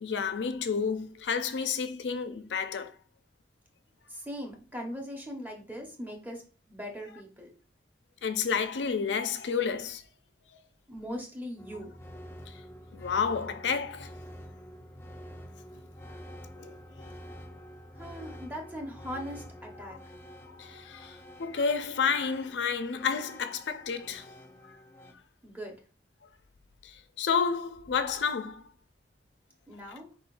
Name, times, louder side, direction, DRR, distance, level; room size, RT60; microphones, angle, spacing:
voice 1, 0.0-2.9 8.2-10.0 12.9-14.1 16.6-16.7 19.8-20.0 20.5-24.3 24.6-24.8 26.8-28.7, left 6 dB, 85° left, 0.4 m, -30 dB
voice 2, 4.1-6.4 6.7-7.5 10.9-11.9 17.9-20.0 25.4-25.8 29.7-30.1, equal, 10° right, 1.0 m, -40 dB
sound 1, 11.6-25.1, equal, 15° left, 0.5 m, -48 dB
4.4 x 3.6 x 2.5 m
head